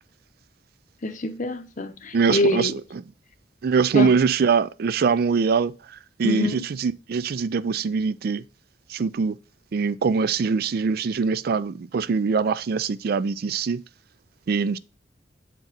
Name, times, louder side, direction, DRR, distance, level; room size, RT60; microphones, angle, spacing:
voice 1, 1.0-2.7 3.9-4.1 6.2-6.6, left 2 dB, 45° left, 0.8 m, -25 dB
voice 2, 2.1-3.0 3.6-8.4 8.9-9.4 9.7-13.8 14.5-14.8, right 5 dB, 60° right, 0.4 m, -23 dB
7.9 x 4.5 x 3.9 m
head